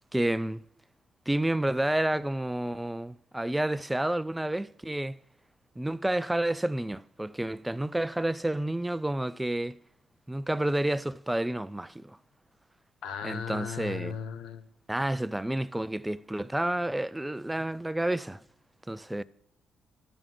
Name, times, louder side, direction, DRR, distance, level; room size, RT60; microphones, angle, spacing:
voice 1, 0.1-0.6 1.3-5.2 5.8-9.8 10.3-12.2 13.2-14.2 14.9-18.4 18.9-19.2, right 1 dB, 10° right, 0.3 m, -30 dB
voice 2, 13.0-14.7, left 7 dB, 85° left, 0.7 m, -36 dB
12.5 x 6.0 x 3.7 m
cardioid pair, 90°, 0 cm